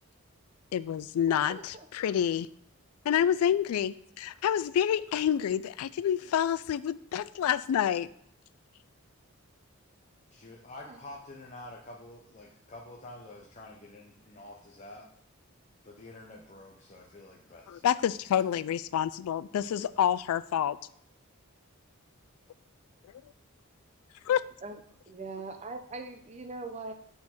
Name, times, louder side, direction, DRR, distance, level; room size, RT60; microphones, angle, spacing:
voice 1, 0.7-2.5 3.1-8.1 17.7-20.8 24.3-24.4, left 9 dB, 90° left, 17 dB, 0.3 m, -28 dB
voice 2, 1.3-1.9 10.8-11.0 24.6-24.8 25.1-26.9, right 3 dB, 30° right, 6 dB, 0.6 m, -41 dB
voice 3, 10.3-15.1 15.8-17.9, left 2 dB, 35° left, -2 dB, 0.7 m, -48 dB
8.6 x 3.9 x 4.3 m, 0.67 s
head